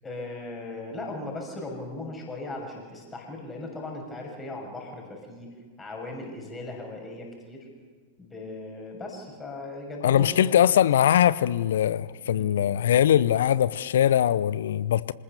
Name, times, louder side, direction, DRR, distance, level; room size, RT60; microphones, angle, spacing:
voice 1, 0.0-5.5 5.8-7.7 8.2-10.7 12.2-12.5, left 2 dB, 15° left, 6.6 m, -38 dB
voice 2, 10.0-15.1, left 10 dB, 60° left, 0.7 m, -21 dB
27.0 x 20.0 x 6.8 m
figure-of-eight pair, 90°, 0 cm